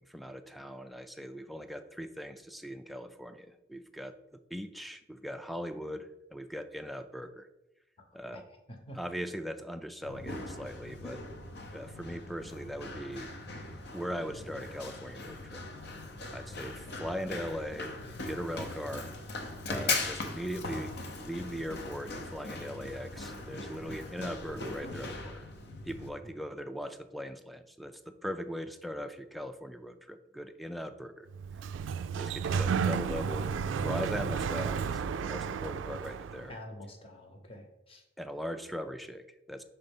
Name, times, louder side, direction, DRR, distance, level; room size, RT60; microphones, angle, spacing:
voice 1, 0.0-7.5 8.1-8.5 8.9-11.2 11.7-13.3 13.9-15.6 16.3-17.9 18.3-19.1 19.7-25.5 25.8-31.3 32.1-33.5 33.8-36.6 38.2-39.6, equal, ahead, 9 dB, 0.3 m, -40 dB
Run, 10.0-26.1, left 3 dB, 60° left, 0.8 m, -39 dB
Sliding door, 31.3-36.5, right 6 dB, 80° right, 0.3 m, -32 dB
voice 2, 36.5-38.0, left 1 dB, 30° left, 4 dB, 1.0 m, -47 dB
5.6 x 3.9 x 5.3 m, 0.97 s
head